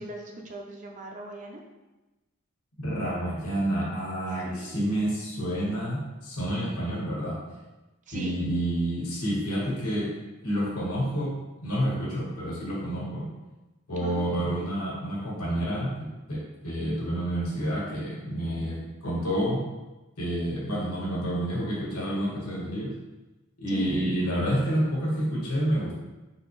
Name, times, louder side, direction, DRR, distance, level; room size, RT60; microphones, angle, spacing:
voice 1, 0.0-1.6 4.5-4.8 8.1-8.4 14.0-14.7 23.7-24.0, right 2 dB, 35° right, 1 dB, 0.4 m, -40 dB
voice 2, 2.8-7.4 8.1-10.1 10.4-11.3 11.6-13.2 13.9-15.9 16.3-19.6 20.2-22.9 23.6-25.9, right 1 dB, 85° left, -5 dB, 1.4 m, -29 dB
3.7 x 2.9 x 3.0 m, 1.1 s
head